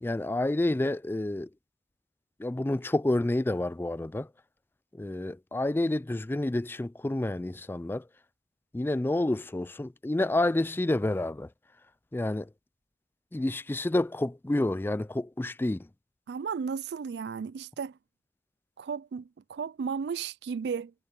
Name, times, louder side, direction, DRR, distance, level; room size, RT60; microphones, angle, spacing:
voice 1, 0.0-1.5 2.4-4.3 4.9-8.0 8.7-11.5 12.1-12.5 13.3-15.9, left 1 dB, 10° left, 0.3 m, -29 dB
voice 2, 16.3-18.0 18.8-20.9, right 6 dB, 70° right, 0.4 m, -34 dB
head